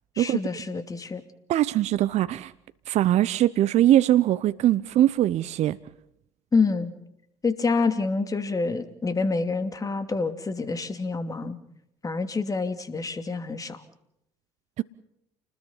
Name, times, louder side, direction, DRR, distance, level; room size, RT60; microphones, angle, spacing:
voice 1, 0.2-1.2 6.5-6.9 7.4-11.6 12.0-13.8, left 4 dB, 25° left, 2.7 m, -27 dB
voice 2, 1.5-2.5 2.9-5.8 14.8-14.9, right 13 dB, 50° right, 0.8 m, -21 dB
30.0 x 20.5 x 5.7 m
hypercardioid pair, 60°, 14 cm